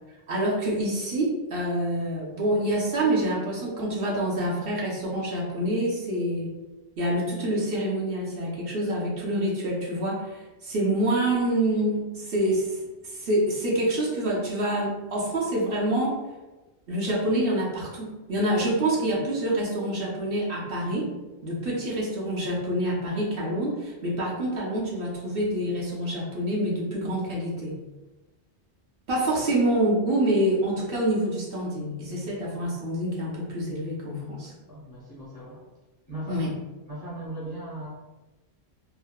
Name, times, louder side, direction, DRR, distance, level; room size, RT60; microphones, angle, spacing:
voice 1, 0.3-6.5 7.0-12.8 13.0-16.2 16.9-21.1 21.4-27.8 29.1-34.5 36.3-36.5, right 1 dB, 60° right, -4 dB, 0.8 m, -26 dB
voice 2, 34.2-35.6 36.1-36.5 36.9-37.9, right 1 dB, 35° left, -7 dB, 0.4 m, -38 dB
2.8 x 2.0 x 2.2 m, 1.1 s
omnidirectional pair, 1.2 m